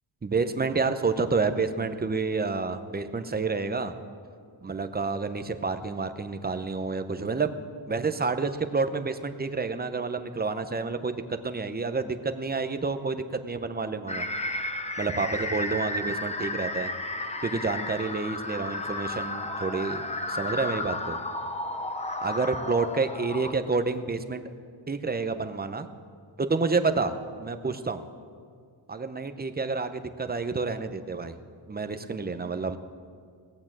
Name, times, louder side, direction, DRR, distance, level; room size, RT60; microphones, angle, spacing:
voice 1, 0.2-3.9 4.6-7.5 7.9-14.3 15.0-16.9 17.4-21.2 22.2-24.4 24.9-25.9 26.4-28.0 28.9-31.4 31.7-32.8, right 4 dB, 20° right, 8 dB, 0.6 m, -29 dB
sound 1, 14.1-23.5, left 2 dB, 15° left, 0.7 m, -33 dB
18.0 x 8.6 x 7.4 m, 2.2 s
wide cardioid pair, 140°, 49 cm